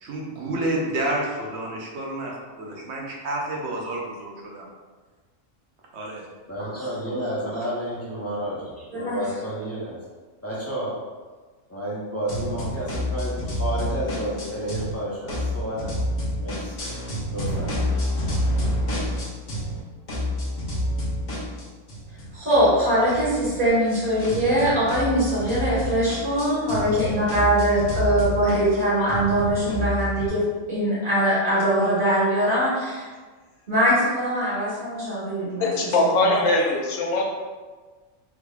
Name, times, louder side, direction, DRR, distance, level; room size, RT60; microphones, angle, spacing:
voice 1, 0.0-4.7 5.9-6.2, right 1 dB, 60° right, -2 dB, 0.9 m, -29 dB
voice 2, 6.5-10.0 10.4-10.9 11.7-16.8 17.3-17.7, equal, 20° left, -8 dB, 0.4 m, -31 dB
voice 3, 8.9-9.2 22.3-30.4 30.7-33.1 33.7-36.4, right 1 dB, 40° right, -11 dB, 1.6 m, -22 dB
sound 1, 12.3-14.9 15.3-19.8 20.1-30.3, left 1 dB, 50° left, 1.0 m, -29 dB
voice 4, 35.6-37.3, left 2 dB, 80° left, -1 dB, 1.0 m, -21 dB
3.5 x 3.1 x 2.3 m, 1.4 s
omnidirectional pair, 1.3 m